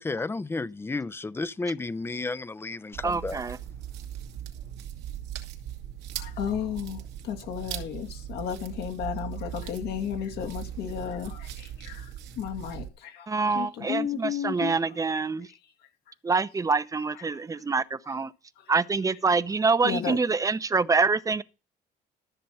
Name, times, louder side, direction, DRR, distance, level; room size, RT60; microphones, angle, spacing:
voice 1, 0.0-3.4, left 3 dB, 15° left, 0.5 m, -32 dB
sound 1, 2.9-12.9, right 11 dB, 90° right, 2.3 m, -39 dB
voice 2, 3.0-3.6 13.3-15.5 16.2-18.3 18.7-21.4, right 4 dB, 20° right, 0.7 m, -26 dB
voice 3, 6.2-12.1 12.4-14.7 19.8-20.2, left 9 dB, 80° left, 2.4 m, -33 dB
13.5 x 6.9 x 5.5 m
cardioid pair, 110°, 17 cm